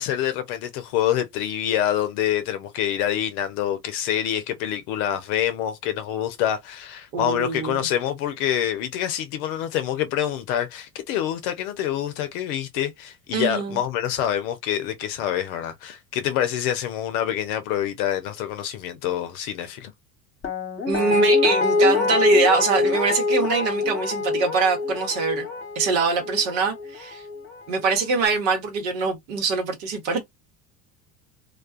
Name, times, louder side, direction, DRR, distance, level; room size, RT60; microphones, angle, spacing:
voice 1, 0.0-19.9, left 10 dB, 65° left, 0.6 m, -26 dB
voice 2, 7.1-7.9 13.3-13.8 20.8-25.5 25.7-27.2 27.7-30.2, right 4 dB, 65° right, 1.1 m, -23 dB
Guitar, 20.4-27.5 27.8-27.9, left 4 dB, 25° left, 1.0 m, -24 dB
2.3 x 2.2 x 2.4 m
hypercardioid pair, 75°, 47 cm